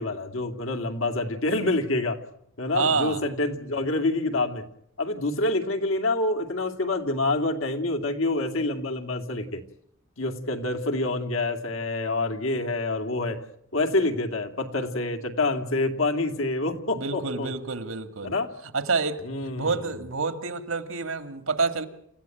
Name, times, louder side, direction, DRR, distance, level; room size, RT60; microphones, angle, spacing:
voice 1, 0.0-2.2 2.6-4.6 5.0-9.6 10.2-13.4 13.7-17.5 18.2-18.5 19.2-19.8, left 2 dB, 75° left, 6 dB, 2.5 m, -27 dB
voice 2, 2.7-3.2 16.9-18.4 18.7-19.2 19.6-21.9, right 4 dB, 75° right, 11 dB, 2.1 m, -27 dB
28.5 x 15.0 x 9.1 m, 0.72 s
head